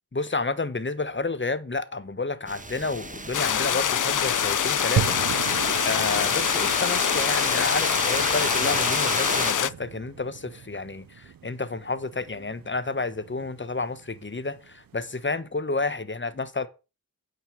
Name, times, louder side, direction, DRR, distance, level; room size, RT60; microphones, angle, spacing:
voice 1, 0.1-5.2 5.8-16.7, left 3 dB, 30° left, 1.4 m, -30 dB
sound 1, 2.5-9.5, right 2 dB, 20° right, 1.4 m, -31 dB
sound 2, 3.3-9.7, left 9 dB, 50° left, 0.5 m, -25 dB
sound 3, 5.0-15.2, right 10 dB, 60° right, 0.6 m, -37 dB
9.4 x 5.5 x 6.5 m
cardioid pair, 45°, 39 cm